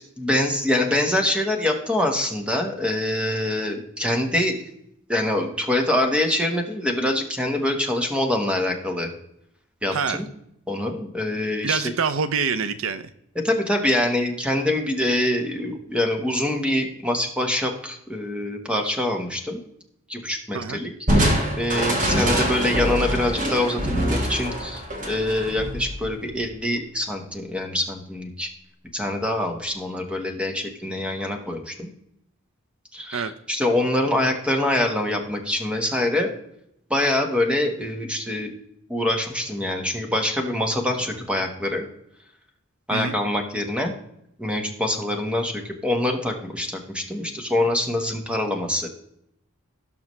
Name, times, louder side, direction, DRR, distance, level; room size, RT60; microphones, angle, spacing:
voice 1, 0.2-4.6 5.1-9.1 9.8-10.3 10.7-11.8 13.4-19.6 20.1-21.3 21.6-28.5 28.9-31.9 32.9-36.3 36.9-38.5 38.9-41.8 42.9-43.9 44.4-48.9, left 1 dB, 5° right, 3 dB, 1.3 m, -25 dB
voice 2, 9.9-10.2 11.6-13.0 20.5-20.8 33.1-33.3 42.9-43.2, right 6 dB, 65° right, 11 dB, 0.5 m, -25 dB
Crushing, 21.1-26.5, equal, 40° right, 1.9 m, -24 dB
17.5 x 6.0 x 3.2 m, 0.76 s
head